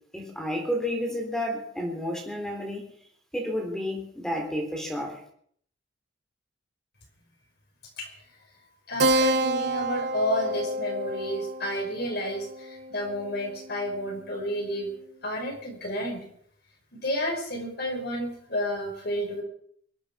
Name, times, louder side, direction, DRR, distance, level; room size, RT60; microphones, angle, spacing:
voice 1, 0.1-2.8 3.3-5.2, equal, 5° left, 1 dB, 3.5 m, -31 dB
voice 2, 8.9-14.9 15.2-16.3 17.0-19.4, equal, 60° left, 1 dB, 5.5 m, -31 dB
Keyboard (musical), 9.0-14.0, right 1 dB, 65° right, 1.2 m, -29 dB
23.0 x 8.7 x 6.2 m, 0.62 s
head